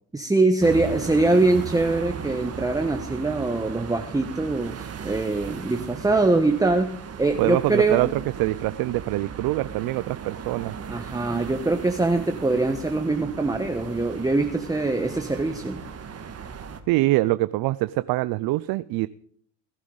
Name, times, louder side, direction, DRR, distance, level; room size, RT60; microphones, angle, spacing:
voice 1, 0.1-8.1 10.9-15.8, right 2 dB, 10° right, 5 dB, 1.1 m, -23 dB
sound 1, 0.6-16.8, right 7 dB, 40° right, 1.7 m, -37 dB
voice 2, 7.4-10.8 16.9-19.1, right 18 dB, 65° right, 15 dB, 0.5 m, -24 dB
19.0 x 11.0 x 4.0 m, 0.63 s
supercardioid pair, 80°, 39 cm